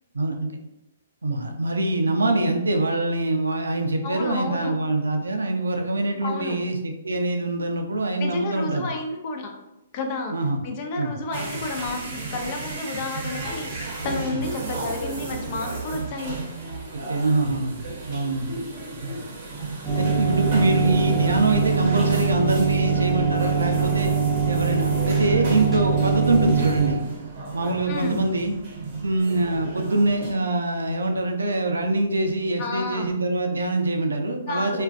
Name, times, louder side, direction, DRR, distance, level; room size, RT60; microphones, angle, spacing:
voice 1, 1.2-8.9 10.3-10.6 11.0-11.1 14.3-14.4 16.9-17.8 18.1-18.6 19.0-19.1 20.0-24.1 24.5-27.0 27.5-28.5 29.0-34.8, right 2 dB, 80° right, 4 dB, 0.4 m, -24 dB
voice 2, 4.0-4.8 6.2-6.6 8.2-9.5 9.9-10.4 10.6-16.4 27.9-28.2 32.6-33.1 34.5-34.8, left 3 dB, 40° left, 2 dB, 0.4 m, -31 dB
sound 1, 11.3-30.3, right 3 dB, 45° right, 0.7 m, -34 dB
sound 2, 19.8-26.9, right 6 dB, 10° right, 0.6 m, -23 dB
2.4 x 2.1 x 2.4 m, 0.91 s
figure-of-eight pair, 125°, 0 cm